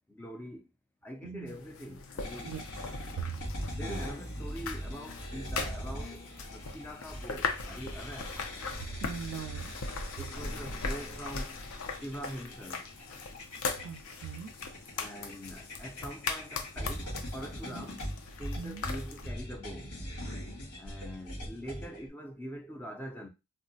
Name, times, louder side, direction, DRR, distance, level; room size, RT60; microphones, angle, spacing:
voice 1, 0.1-0.7 1.0-2.5 3.7-8.3 10.2-11.6 11.9-12.9 14.9-18.0 18.4-19.9 20.8-23.3, equal, 10° left, 0.4 m, -44 dB
voice 2, 1.2-1.6 2.4-2.6 3.1-3.3 9.0-9.7 13.8-14.5 17.7-17.9 18.6-18.8, right 7 dB, 65° right, 0.3 m, -40 dB
sound 1, 1.5-19.3, left 4 dB, 65° left, 0.5 m, -40 dB
sound 2, 2.2-22.1, equal, 85° left, 1.9 m, -42 dB
3.5 x 2.0 x 2.6 m
head